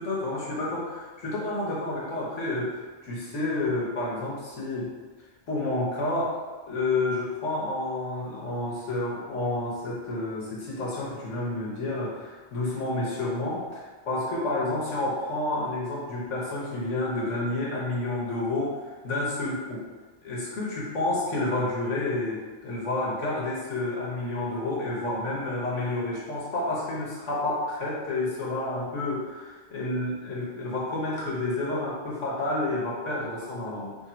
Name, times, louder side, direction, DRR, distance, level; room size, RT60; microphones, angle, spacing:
voice 1, 0.0-4.9 5.5-6.4 6.7-18.8 19.0-19.9 20.2-34.0, left 2 dB, 90° left, -5 dB, 1.4 m, -30 dB
3.3 x 2.7 x 4.3 m, 1.3 s
omnidirectional pair, 1.2 m